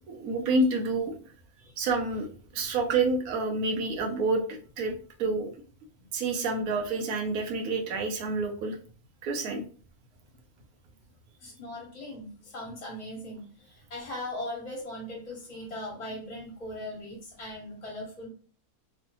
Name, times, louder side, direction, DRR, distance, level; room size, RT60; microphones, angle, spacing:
voice 1, 0.1-1.2 1.8-5.5 6.1-8.8 9.2-9.6, right 3 dB, 80° right, 4 dB, 1.1 m, -28 dB
voice 2, 11.4-18.3, left 1 dB, 30° left, -3 dB, 1.1 m, -39 dB
3.1 x 2.1 x 2.9 m, 0.41 s
omnidirectional pair, 1.5 m